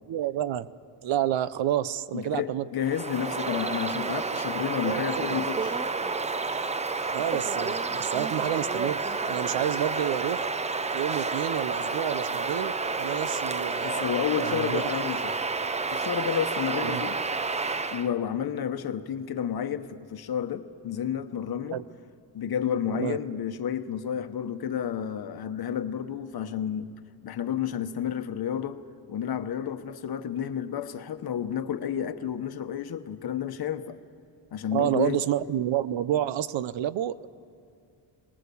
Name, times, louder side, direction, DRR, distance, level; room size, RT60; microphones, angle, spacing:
voice 1, 0.1-0.7 1.0-2.7 4.1-4.2 4.8-5.2 7.1-10.5 10.9-14.8 16.8-17.1 21.7-21.8 22.9-23.2 34.7-37.3, right 11 dB, 80° right, 0.8 m, -29 dB
voice 2, 2.1-5.8 13.8-15.3 15.9-17.2 17.9-21.8 22.3-26.9 27.2-28.8 29.1-34.0 34.5-35.2, left 9 dB, 55° left, 1.0 m, -31 dB
Bird vocalization bird call bird song, 2.8-18.1, right 4 dB, 15° right, 0.5 m, -30 dB
23.0 x 20.0 x 7.0 m
cardioid pair, 140°, 44 cm